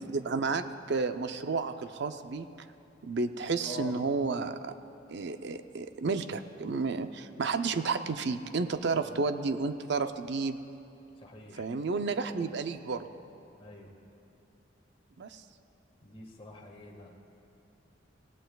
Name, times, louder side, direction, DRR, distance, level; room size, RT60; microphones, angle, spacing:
voice 1, 0.0-2.5 3.0-4.7 5.1-10.6 11.5-13.1 15.2-15.4, right 4 dB, 65° right, 9 dB, 0.6 m, -31 dB
voice 2, 3.6-3.9 8.9-9.2 11.2-11.6 13.6-13.9 16.0-17.1, left 1 dB, 30° left, 0 dB, 1.7 m, -45 dB
25.0 x 16.5 x 2.3 m, 2.7 s
head